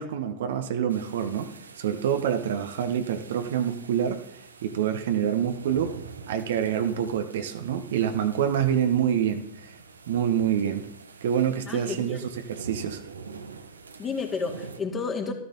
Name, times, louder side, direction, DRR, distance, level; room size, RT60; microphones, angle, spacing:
voice 1, 0.0-4.2 4.6-5.9 6.3-9.7 10.1-10.8 11.2-13.0, right 9 dB, 60° right, 7 dB, 1.3 m, -26 dB
sound 1, 0.9-14.8, right 4 dB, 75° right, 1.3 m, -45 dB
voice 2, 11.7-12.3 14.0-15.3, left 4 dB, 25° left, 3 dB, 2.5 m, -31 dB
14.0 x 14.0 x 4.1 m, 0.76 s
figure-of-eight pair, 90°, 0 cm